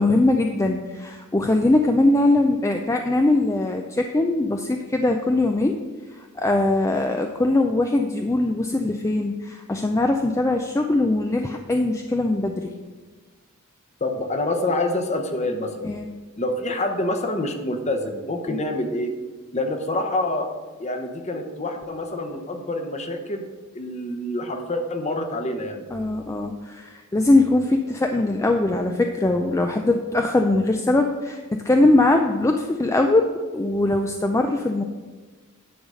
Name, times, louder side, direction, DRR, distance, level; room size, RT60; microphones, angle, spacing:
voice 1, 0.0-5.8 6.1-12.7 15.8-16.1 18.5-18.6 25.9-34.8, left 2 dB, 15° left, 4 dB, 0.4 m, -21 dB
voice 2, 14.0-15.9 16.4-19.1 19.5-20.5 20.8-23.4 23.7-25.9, left 1 dB, 30° left, 5 dB, 0.9 m, -26 dB
10.0 x 4.0 x 6.3 m, 1.3 s
head